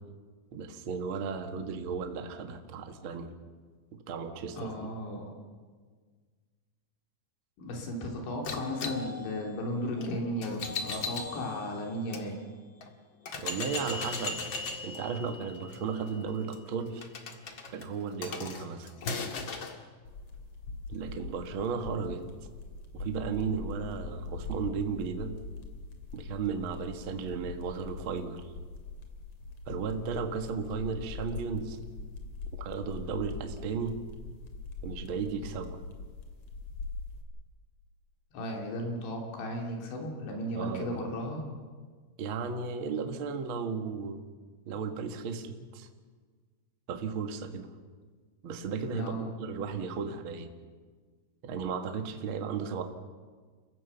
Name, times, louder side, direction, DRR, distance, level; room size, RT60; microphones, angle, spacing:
voice 1, 0.5-3.3 4.1-4.9 13.4-14.6 14.8-17.1 17.7-18.9 20.9-22.2 22.9-25.3 26.1-28.4 29.7-31.8 32.6-34.0 34.8-35.8 40.5-41.0 42.2-44.2 44.7-45.9 46.9-47.7 48.4-50.5 51.4-52.8, right 5 dB, 75° right, 6 dB, 1.1 m, -35 dB
voice 2, 4.6-5.3 7.6-12.4 38.3-41.4 49.0-49.3, equal, 85° left, 1 dB, 5.4 m, -35 dB
sound 1, 8.4-12.2 12.8-12.9 13.3-19.8, left 4 dB, 60° left, 1.3 m, -38 dB
sound 2, 20.0-37.2, left 3 dB, 40° left, 2.9 m, -42 dB
29.0 x 16.0 x 7.1 m, 1.5 s
omnidirectional pair, 5.0 m